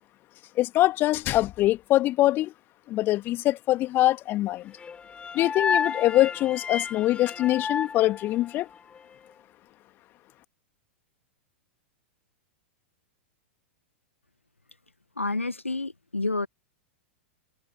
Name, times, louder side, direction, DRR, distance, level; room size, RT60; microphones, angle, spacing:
voice 1, 0.6-2.5 2.9-4.7 5.3-8.7, left 15 dB, 30° left, 2.4 m, -23 dB
sound 1, 4.8-9.0, left 6 dB, 15° left, 4.8 m, -31 dB
voice 2, 15.2-16.5, left 2 dB, 85° left, 1.3 m, -29 dB
figure-of-eight pair, 100°, 7 cm